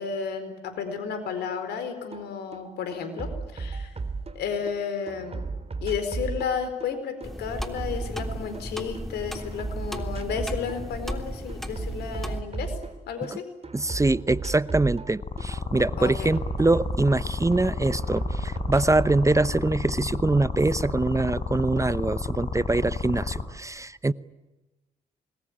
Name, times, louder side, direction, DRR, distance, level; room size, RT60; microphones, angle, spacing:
voice 1, 0.0-4.0 4.3-5.4 5.8-12.8 13.1-13.5 16.0-16.3, left 6 dB, 75° left, 10 dB, 4.4 m, -32 dB
sound 1, 2.1-2.2 2.5-4.7 5.1-9.0 9.3-10.8 11.1-13.3 13.6-17.6 17.9-19.2, right 4 dB, 35° right, 3.6 m, -35 dB
sound 2, 7.2-12.4, equal, ahead, 3.3 m, -36 dB
voice 2, 13.7-24.1, right 2 dB, 20° right, 17 dB, 0.9 m, -24 dB
sound 3, 15.2-23.4, left 4 dB, 45° left, 4.1 m, -31 dB
26.5 x 21.0 x 10.0 m, 1.1 s
hypercardioid pair, 45°, 17 cm